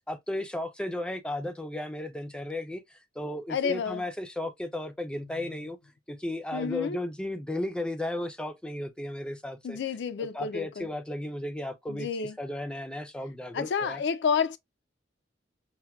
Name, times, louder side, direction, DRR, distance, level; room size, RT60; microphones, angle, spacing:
voice 1, 0.1-5.8 6.1-9.8 10.2-14.0, left 1 dB, 5° left, 0.4 m, -35 dB
voice 2, 3.5-4.0 6.5-7.0 9.6-10.9 11.9-12.3 13.5-14.6, left 6 dB, 70° left, 0.4 m, -30 dB
5.6 x 2.1 x 2.3 m
head